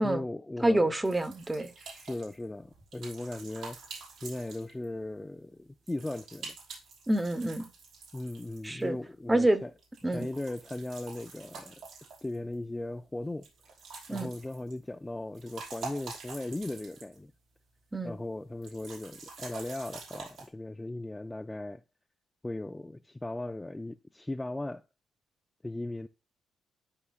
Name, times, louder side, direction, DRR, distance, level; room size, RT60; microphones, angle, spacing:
voice 1, 0.0-0.9 1.8-3.8 4.2-6.5 8.1-9.7 10.1-11.8 12.2-13.5 14.1-17.3 18.0-21.8 22.4-24.8 25.6-26.1, left 2 dB, 15° left, 0.3 m, -37 dB
voice 2, 0.6-1.7 7.1-7.7 8.6-9.0 9.3-9.6 10.0-10.3 14.1-14.3 17.9-18.2, right 1 dB, 15° right, 0.9 m, -27 dB
sound 1, 1.0-5.0 5.9-8.9 9.8-12.5 13.4-14.8 15.2-17.3 17.6-17.7 18.6-20.5, right 4 dB, 75° right, 4.9 m, -47 dB
13.0 x 5.0 x 2.4 m
cardioid pair, 90°, 0 cm